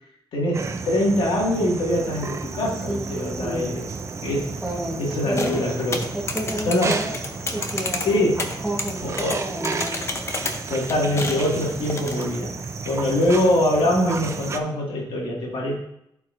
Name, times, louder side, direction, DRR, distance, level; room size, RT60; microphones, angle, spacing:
voice 1, 0.3-3.9 4.2-4.5 5.0-6.0 6.7-7.0 8.0-8.5 9.0-9.4 10.7-12.5 12.8-15.7, left 1 dB, 90° left, -2 dB, 2.0 m, -23 dB
sound 1, 0.5-14.6, right 4 dB, 35° right, 0.5 m, -33 dB
voice 2, 2.9-3.7 4.6-5.7 6.1-7.2 7.5-8.4 8.6-10.1 13.1-13.2, right 1 dB, 5° right, -1 dB, 1.2 m, -31 dB
sound 2, 5.3-12.4, left 3 dB, 35° left, 0.8 m, -32 dB
11.5 x 4.6 x 2.6 m, 0.77 s
wide cardioid pair, 130°, 8 cm